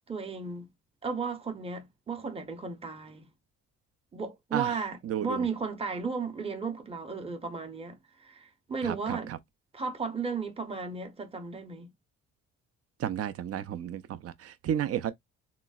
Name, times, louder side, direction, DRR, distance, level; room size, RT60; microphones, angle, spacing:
voice 1, 0.1-0.7 1.0-3.3 4.1-9.3 9.7-11.9, right 5 dB, 20° right, 0.8 m, -35 dB
voice 2, 5.0-5.5 8.8-9.4 13.0-15.1, right 10 dB, 50° right, 0.5 m, -32 dB
3.8 x 2.0 x 2.3 m
cardioid pair, 90°, 30 cm